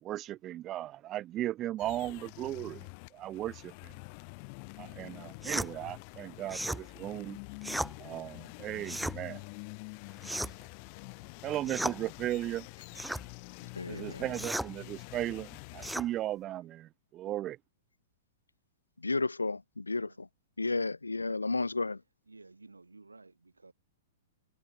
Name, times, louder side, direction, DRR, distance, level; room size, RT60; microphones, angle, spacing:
voice 1, 0.0-2.9 3.1-3.9 4.8-7.4 8.0-9.4 10.3-10.4 11.4-12.7 13.9-17.6, right 13 dB, 30° right, 0.9 m, -36 dB
sound 1, 1.8-15.9, left 38 dB, 40° left, 5.1 m, -47 dB
sound 2, 5.4-5.7 6.5-6.8 7.6-7.9 8.8-9.2 10.2-10.7 11.6-12.0 12.9-13.2 14.3-14.7 15.8-16.1, right 1 dB, ahead, 3.7 m, -34 dB
voice 2, 13.7-14.3 19.0-20.3 20.6-22.0, left 3 dB, 85° left, 2.4 m, -32 dB
voice 3, 22.3-23.7, right 3 dB, 85° right, 7.2 m, -54 dB
figure-of-eight pair, 105°, 0 cm